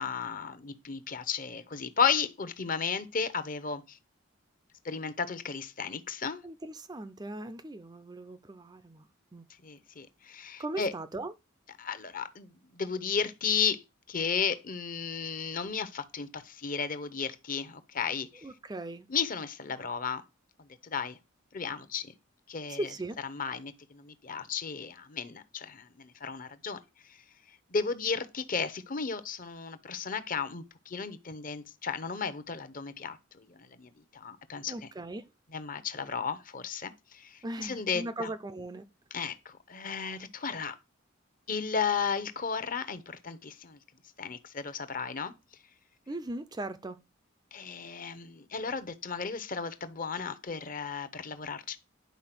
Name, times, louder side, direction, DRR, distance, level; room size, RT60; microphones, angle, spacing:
voice 1, 0.0-4.0 4.8-6.4 9.6-10.9 11.8-13.8 14.1-18.4 19.1-20.2 20.8-21.2 21.5-22.1 22.5-22.8 23.3-26.8 27.7-34.7 35.5-38.3 39.1-40.7 41.5-43.8 44.2-45.3 47.5-51.8, left 6 dB, 40° left, 0.9 m, -34 dB
voice 2, 6.4-9.1 9.3-9.5 10.6-11.3 18.4-19.1 22.7-23.2 34.7-35.2 37.4-38.9 46.1-47.0, right 2 dB, 20° right, 0.4 m, -38 dB
10.5 x 4.3 x 5.9 m
head